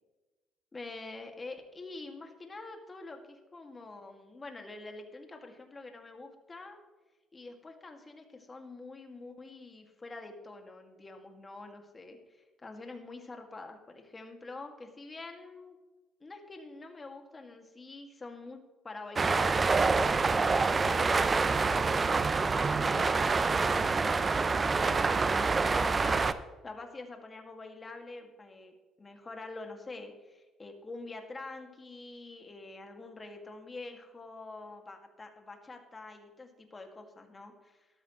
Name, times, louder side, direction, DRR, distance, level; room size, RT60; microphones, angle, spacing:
voice 1, 0.7-6.8 7.3-15.8 16.2-19.7 20.1-26.3 26.6-37.9, left 3 dB, 30° left, 4 dB, 2.1 m, -46 dB
sound 1, 19.2-26.3, right 4 dB, 35° right, 0.6 m, -26 dB
13.0 x 12.5 x 3.1 m, 1.2 s
hypercardioid pair, 60°, 0 cm